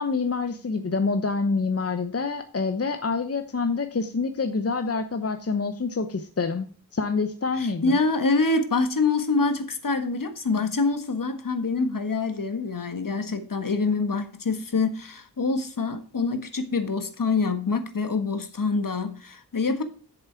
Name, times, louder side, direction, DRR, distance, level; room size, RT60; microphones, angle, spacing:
voice 1, 0.0-6.7 6.9-8.0, left 4 dB, 35° left, 0.9 m, -27 dB
voice 2, 7.5-19.8, left 3 dB, 55° left, 1.5 m, -25 dB
7.9 x 7.0 x 4.6 m
cardioid pair, 50°, 40 cm